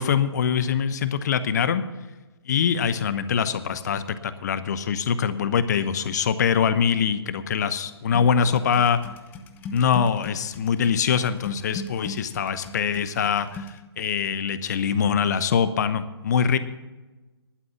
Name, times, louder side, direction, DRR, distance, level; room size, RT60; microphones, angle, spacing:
voice 1, 0.0-1.8 2.5-9.0 9.7-13.7 14.0-16.6, left 7 dB, 40° left, 13 dB, 0.9 m, -23 dB
sound 1, 8.1-13.8, left 3 dB, 10° left, 0.7 m, -39 dB
11.5 x 9.3 x 7.0 m, 1.2 s
figure-of-eight pair, 140°, 14 cm